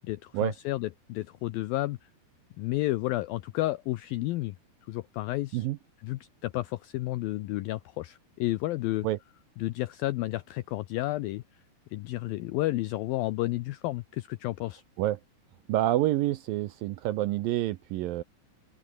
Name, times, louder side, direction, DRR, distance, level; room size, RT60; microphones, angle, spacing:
voice 1, 0.0-2.1 2.6-4.6 4.9-5.7 6.0-9.1 9.6-11.4 11.9-14.8, left 17 dB, 85° left, 2.1 m, -31 dB
voice 2, 15.7-18.2, right 14 dB, 75° right, 2.1 m, -28 dB
open air
omnidirectional pair, 5.0 m